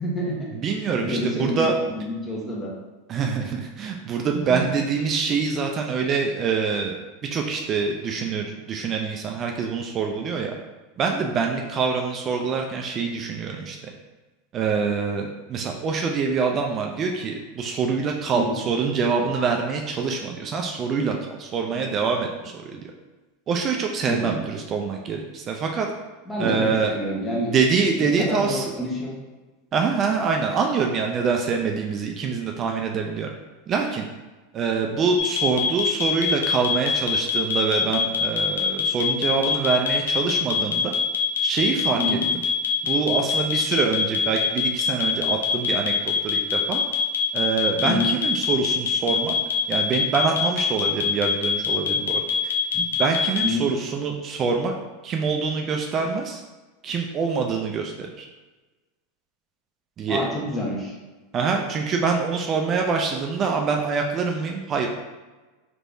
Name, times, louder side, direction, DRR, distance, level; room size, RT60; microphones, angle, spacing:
voice 1, 0.0-0.4 1.0-2.7 4.4-4.7 18.3-18.6 21.7-22.0 24.1-24.3 26.3-27.5 28.0-29.1 32.2-32.3 42.0-42.3 47.8-48.1 53.4-53.7 60.1-60.9, left 1 dB, 20° left, -3 dB, 1.1 m, -28 dB
voice 2, 0.5-1.7 3.1-7.0 7.3-10.5 11.0-13.9 14.5-22.9 23.5-25.9 26.4-26.9 27.4-28.7 29.7-33.3 33.7-34.1 34.5-40.9 41.4-42.2 42.8-45.9 46.2-46.8 47.3-49.4 49.7-52.2 52.7-54.7 55.0-56.4 56.8-58.3 60.0-60.2 61.3-64.9, right 5 dB, 35° right, 2 dB, 0.4 m, -25 dB
sound 1, 35.2-53.5, left 6 dB, 90° left, 0.5 m, -23 dB
3.3 x 3.3 x 2.6 m, 1.2 s
hypercardioid pair, 105°, 0 cm